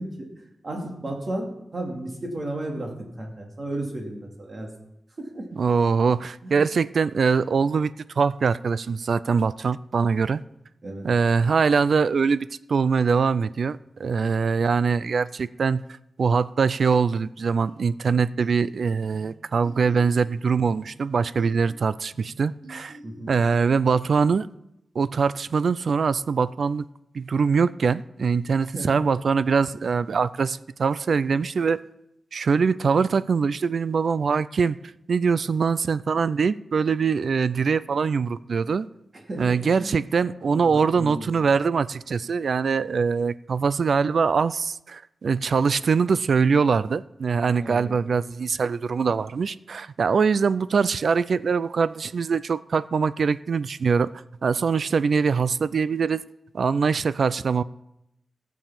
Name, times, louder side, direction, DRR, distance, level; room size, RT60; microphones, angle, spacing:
voice 1, 0.0-4.7 5.2-5.5 6.4-6.7 10.8-11.1 23.0-23.4 28.7-29.0 39.1-40.0 40.2-41.4 47.6-47.9, right 1 dB, 40° right, 0 dB, 2.5 m, -34 dB
voice 2, 5.6-10.4 11.0-15.8 16.2-22.9 23.3-24.5 25.0-26.9 27.1-31.8 32.3-34.8 35.1-38.9 39.4-54.1 54.4-56.2 56.5-57.6, right 5 dB, 65° right, 17 dB, 0.4 m, -23 dB
sound 1, 17.6-23.6, right 2 dB, 80° right, 3.3 m, -50 dB
16.0 x 7.1 x 5.8 m, 0.83 s
wide cardioid pair, 150°, 0 cm